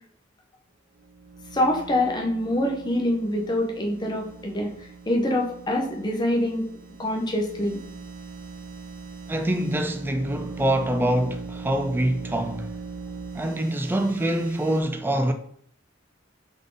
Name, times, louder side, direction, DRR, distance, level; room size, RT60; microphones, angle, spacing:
sound 1, 1.0-14.8, right 4 dB, 50° right, 0.8 m, -41 dB
voice 1, 1.5-4.7 5.1-6.6 7.0-7.8, left 1 dB, 20° left, 0.8 m, -25 dB
voice 2, 9.3-12.7 13.3-15.3, right 1 dB, 10° right, 0.4 m, -25 dB
3.6 x 3.6 x 3.8 m
head